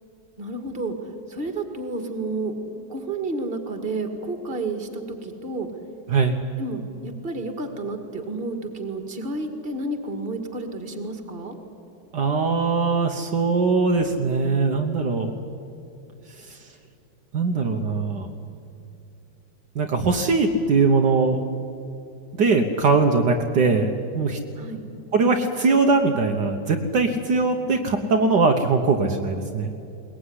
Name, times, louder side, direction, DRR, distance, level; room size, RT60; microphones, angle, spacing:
voice 1, 0.4-2.5 2.9-5.7 6.6-11.6 24.6-24.8, right 2 dB, 30° right, 6 dB, 2.2 m, -31 dB
voice 2, 12.1-15.3 16.4-16.6 17.3-18.3 19.8-21.4 22.4-24.4 25.1-29.7, right 4 dB, 65° right, 4 dB, 1.7 m, -21 dB
21.5 x 20.0 x 9.7 m, 2.7 s
omnidirectional pair, 2.0 m